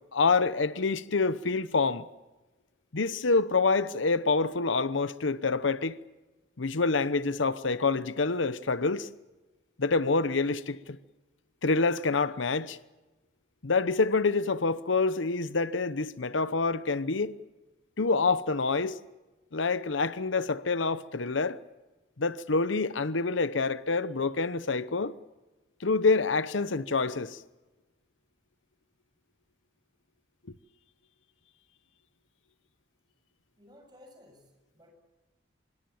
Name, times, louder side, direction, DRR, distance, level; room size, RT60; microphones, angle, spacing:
voice 1, 0.1-2.1 2.9-6.0 6.6-9.1 9.8-11.0 11.6-12.8 13.6-17.3 18.0-19.0 19.5-21.6 22.2-25.1 25.8-27.4, left 4 dB, 85° left, 0.9 m, -27 dB
voice 2, 33.6-34.9, left 1 dB, 20° right, 7.2 m, -56 dB
25.5 x 22.5 x 7.2 m
head